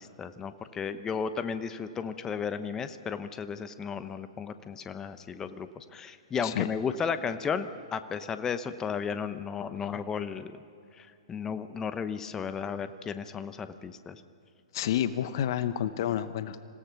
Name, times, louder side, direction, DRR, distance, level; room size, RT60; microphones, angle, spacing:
voice 1, 0.0-10.5 11.0-14.2, left 6 dB, 20° left, 11 dB, 0.9 m, -34 dB
voice 2, 14.7-16.6, left 10 dB, 55° left, 13 dB, 0.9 m, -29 dB
26.5 x 17.0 x 6.0 m, 2.5 s
figure-of-eight pair, 115°, 3 cm